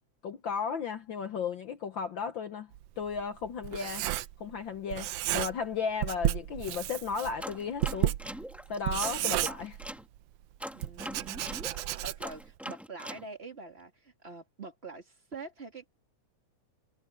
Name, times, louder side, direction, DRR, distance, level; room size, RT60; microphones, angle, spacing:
voice 1, 0.2-2.7 3.0-4.1 4.4-8.1 8.7-9.8, left 6 dB, 65° left, 1.2 m, -35 dB
Writing, 2.7-4.6 4.9-5.7 6.0-10.2 10.8-12.4, right 14 dB, 75° right, 1.4 m, -32 dB
sound 1, 7.4-10.0 10.6-13.2, equal, ahead, 1.1 m, -42 dB
voice 2, 8.8-9.2 10.7-16.0, right 4 dB, 20° right, 2.8 m, -46 dB
omnidirectional pair, 3.3 m